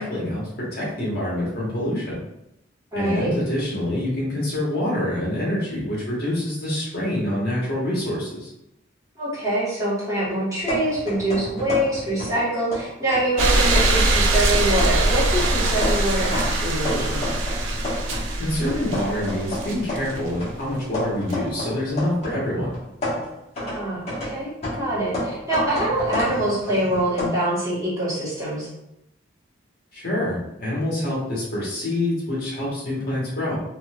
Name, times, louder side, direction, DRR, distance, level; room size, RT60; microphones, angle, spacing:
voice 1, 0.0-2.2 2.9-8.5 18.4-22.7 29.9-33.6, left 1 dB, 50° left, -6 dB, 1.4 m, -26 dB
voice 2, 2.9-3.3 9.2-17.2 23.6-24.5 24.8-28.7, right 1 dB, 20° right, -10 dB, 1.5 m, -24 dB
sound 1, 10.6-12.4 12.7-14.0 14.5-18.3 18.7-22.4 22.7-27.3, left 1 dB, 35° left, 1.4 m, -31 dB
sound 2, 13.4-20.3 21.3-21.4, right 2 dB, 85° right, 0.6 m, -22 dB
4.1 x 2.7 x 2.4 m, 0.84 s
head